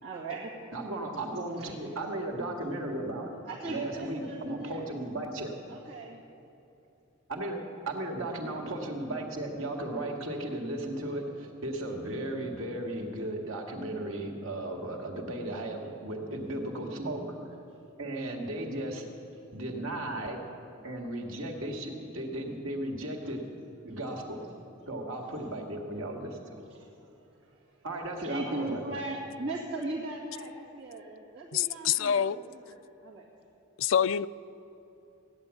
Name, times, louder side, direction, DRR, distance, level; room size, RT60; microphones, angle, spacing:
voice 1, 0.0-0.6 1.6-1.7 3.5-4.8 5.7-6.2 26.7-26.9 27.4-27.5 28.2-32.8 33.0-33.2, right 2 dB, 55° right, 2.1 m, -38 dB
voice 2, 0.7-3.3 3.7-5.5 7.3-17.5 18.0-19.1 19.5-20.4 20.8-23.4 23.8-24.4 24.9-26.6 27.8-29.0, right 1 dB, 80° right, 2.1 m, -35 dB
voice 3, 31.5-32.4 33.8-34.3, left 8 dB, 70° left, 0.4 m, -26 dB
16.5 x 10.5 x 8.3 m
head